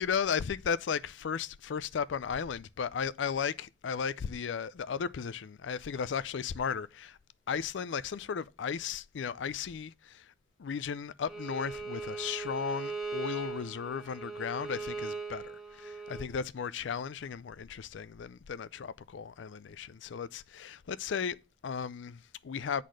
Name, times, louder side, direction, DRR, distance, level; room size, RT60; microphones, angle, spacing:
voice 1, 0.0-7.2 7.5-10.3 10.6-22.8, left 6 dB, 75° left, 0.4 m, -35 dB
Bowed string instrument, 11.3-16.3, right 4 dB, ahead, 1.7 m, -39 dB
8.3 x 4.1 x 6.2 m
head